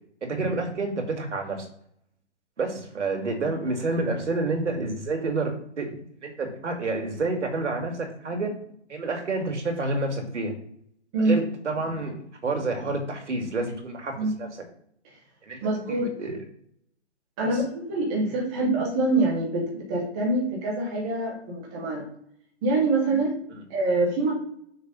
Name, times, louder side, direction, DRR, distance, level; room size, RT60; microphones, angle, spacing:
voice 1, 0.2-1.7 2.6-6.0 6.2-8.5 8.9-10.5 11.2-12.2 12.4-14.5 15.4-15.6 15.9-16.3 17.4-17.5 23.5-23.6, right 3 dB, 80° right, 2 dB, 2.4 m, -29 dB
voice 2, 15.6-16.1 17.4-22.1 22.6-23.3 23.7-24.3, right 2 dB, 5° right, -1 dB, 0.4 m, -25 dB
6.3 x 4.1 x 6.1 m, 0.67 s
hypercardioid pair, 155°, 35 cm